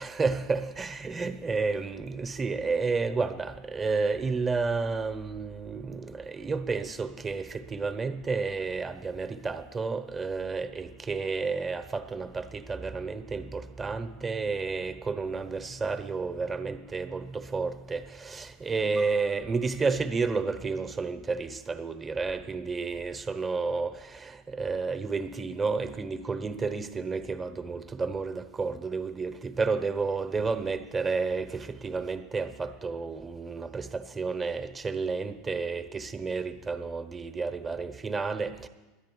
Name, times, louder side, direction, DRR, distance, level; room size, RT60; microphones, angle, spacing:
voice 1, 0.0-38.7, right 4 dB, 25° right, 8 dB, 1.0 m, -31 dB
10.5 x 10.5 x 8.4 m, 1.2 s
hypercardioid pair, 90°, 0 cm